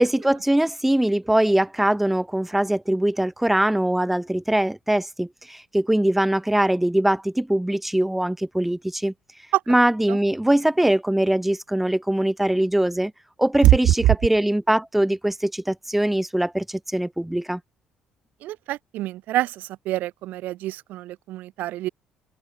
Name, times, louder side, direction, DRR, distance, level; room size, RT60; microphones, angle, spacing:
voice 1, 0.0-9.1 9.7-13.1 13.4-17.6, right 1 dB, 5° right, 0.7 m, -22 dB
voice 2, 18.4-21.9, right 15 dB, 60° right, 0.8 m, -24 dB
figure-of-eight pair, 50°, 3 cm